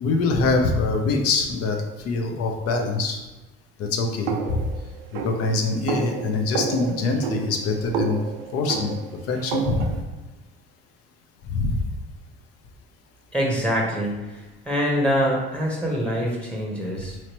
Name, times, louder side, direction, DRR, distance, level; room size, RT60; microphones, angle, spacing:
voice 1, 0.0-3.2 3.8-4.6 5.2-8.2 8.5-8.9 9.3-9.9 11.5-11.8, left 3 dB, 55° left, 3 dB, 0.7 m, -24 dB
sound 1, 4.3-10.0, right 6 dB, 85° right, 0.4 m, -30 dB
voice 2, 13.3-17.2, equal, 5° left, -2 dB, 1.0 m, -25 dB
3.0 x 2.9 x 3.0 m, 1.1 s
hypercardioid pair, 60°, 29 cm